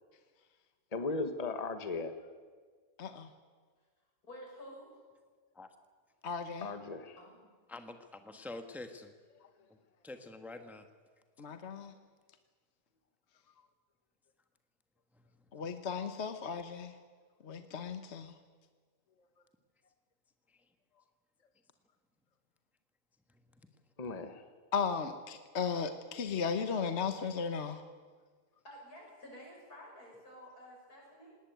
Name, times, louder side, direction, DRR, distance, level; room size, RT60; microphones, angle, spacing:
voice 1, 0.9-2.1 6.6-7.2 9.4-9.5 24.0-24.4, left 3 dB, 30° left, 9 dB, 1.3 m, -37 dB
voice 2, 4.2-5.0 7.2-7.4 28.6-31.4, equal, 85° left, -1 dB, 7.1 m, -51 dB
voice 3, 6.2-6.7 11.4-11.9 15.5-16.9 17.4-18.3 24.7-27.8, left 6 dB, 50° left, 8 dB, 1.3 m, -35 dB
voice 4, 8.2-9.1 10.0-10.8, left 2 dB, ahead, 7 dB, 1.2 m, -45 dB
19.5 x 18.5 x 9.3 m, 1.5 s
omnidirectional pair, 1.6 m